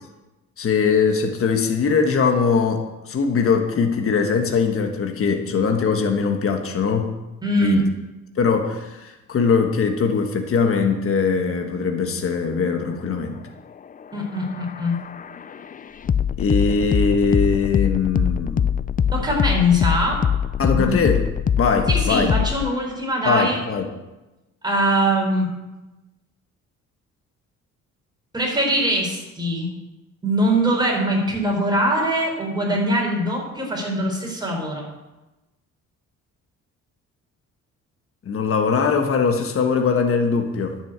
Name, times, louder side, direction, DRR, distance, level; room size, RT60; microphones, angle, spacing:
voice 1, 0.6-7.1 7.6-7.8 8.4-13.4 16.4-18.7 20.6-21.2 21.6-22.3 23.2-23.9 38.2-40.8, left 5 dB, 45° left, 5 dB, 1.4 m, -21 dB
voice 2, 7.4-7.8 14.1-15.0 19.1-20.2 20.7-21.0 21.9-23.6 24.6-25.5 28.3-29.7 30.2-34.8, equal, 15° right, -1 dB, 4.6 m, -22 dB
sound 1, 14.0-22.7, left 8 dB, 30° left, 0.4 m, -23 dB
11.0 x 6.3 x 8.0 m, 1.1 s
cardioid pair, 90°, 30 cm